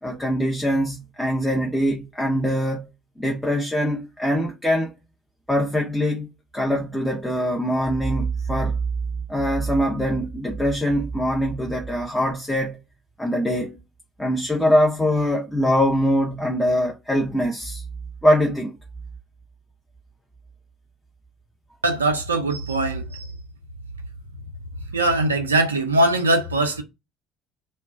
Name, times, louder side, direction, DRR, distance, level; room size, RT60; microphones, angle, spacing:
voice 1, 0.0-2.9 3.2-4.9 5.5-8.8 9.3-12.8 13.2-13.8 14.2-17.8 18.2-18.7, equal, 10° left, 0.6 m, -23 dB
voice 2, 21.8-23.3 24.9-26.8, right 2 dB, 80° right, 0.4 m, -21 dB
2.3 x 2.2 x 3.3 m
figure-of-eight pair, 55°, 0 cm